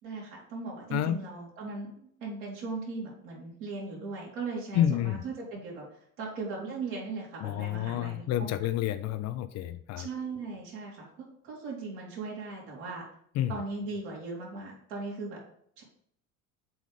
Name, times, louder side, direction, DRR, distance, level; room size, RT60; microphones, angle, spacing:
voice 1, 0.0-5.9 6.2-8.2 10.0-13.0 13.5-15.4 15.8-15.9, right 3 dB, 70° right, -3 dB, 3.1 m, -38 dB
voice 2, 4.7-5.2 7.4-10.1 13.3-13.6, left 11 dB, 40° left, 12 dB, 0.5 m, -29 dB
7.7 x 3.6 x 5.3 m, 0.67 s
hypercardioid pair, 70°, 42 cm